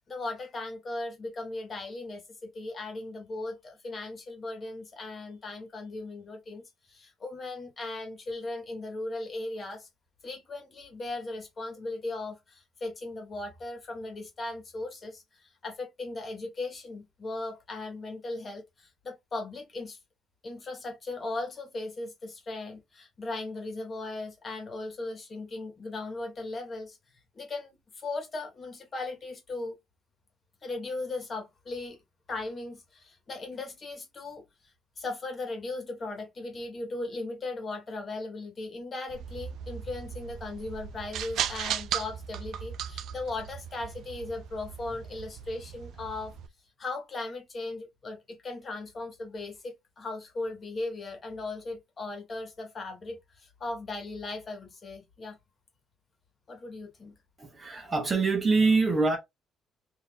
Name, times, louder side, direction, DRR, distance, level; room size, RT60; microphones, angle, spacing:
voice 1, 0.1-6.6 6.9-9.9 10.2-20.0 20.4-27.0 27.3-29.7 30.6-32.0 32.3-34.4 35.0-46.3 46.8-55.4 56.5-57.2, left 2 dB, 30° left, 1.4 m, -37 dB
sound 1, 39.1-46.5, right 9 dB, 65° right, 0.4 m, -37 dB
voice 2, 57.4-59.2, right 3 dB, 25° right, 0.9 m, -24 dB
4.0 x 2.8 x 3.5 m
cardioid pair, 155°, 0 cm